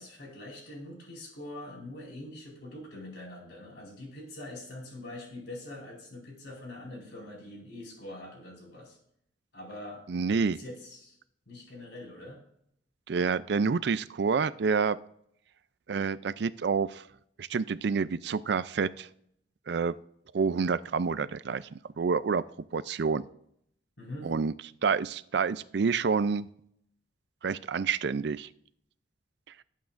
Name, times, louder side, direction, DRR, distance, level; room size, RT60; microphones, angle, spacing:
voice 1, 0.0-9.0 9.5-10.0 10.5-11.2 11.5-12.4 24.0-24.3, left 1 dB, 75° left, -2 dB, 4.9 m, -44 dB
voice 2, 10.1-10.6 13.1-15.0 15.9-17.0 17.4-19.1 19.7-19.9 20.3-22.4 22.7-23.2 24.2-24.5 24.8-26.5 27.4-28.5, right 5 dB, 65° right, 16 dB, 0.4 m, -28 dB
19.0 x 8.4 x 2.5 m, 0.71 s
head